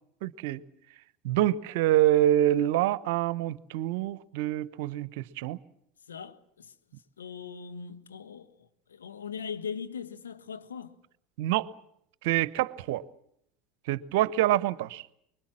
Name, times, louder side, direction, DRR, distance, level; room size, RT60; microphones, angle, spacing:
voice 1, 0.2-0.6 1.2-5.6 11.4-11.7 12.2-13.0 13.9-15.0, right 13 dB, 65° right, 0.9 m, -26 dB
voice 2, 6.1-6.7 7.2-11.0, left 6 dB, 85° left, 1.3 m, -40 dB
24.5 x 22.5 x 7.5 m
hypercardioid pair, 80°, 0 cm